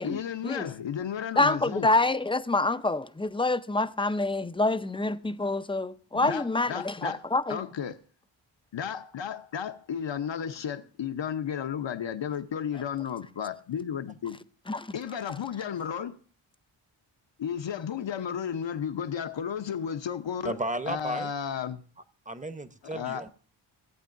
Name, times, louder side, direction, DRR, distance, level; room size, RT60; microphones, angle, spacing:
voice 1, 0.0-1.9 6.1-7.2 7.5-8.0 8.7-14.4 14.9-16.2 17.4-20.6 20.9-21.8 22.8-23.3, left 8 dB, 60° left, 0.9 m, -33 dB
voice 2, 1.4-7.6 14.7-14.9, left 2 dB, 10° left, 0.5 m, -27 dB
voice 3, 20.4-21.3 22.3-23.3, right 2 dB, 15° right, 0.9 m, -34 dB
17.0 x 8.3 x 2.6 m
cardioid pair, 50°, 50 cm